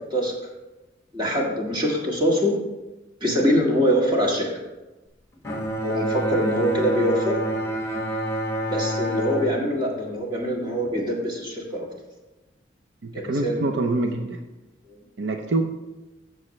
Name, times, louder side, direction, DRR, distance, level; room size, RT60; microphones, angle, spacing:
voice 1, 1.1-2.6 3.2-4.5 5.8-7.4 8.7-11.9 13.1-13.7 14.9-15.0, equal, 25° right, -2 dB, 1.8 m, -24 dB
Bowed string instrument, 5.4-10.9, right 1 dB, 15° left, 1.6 m, -28 dB
voice 2, 13.0-14.4 15.2-15.6, right 2 dB, 70° right, 4 dB, 0.7 m, -25 dB
14.5 x 6.4 x 3.2 m, 1.1 s
head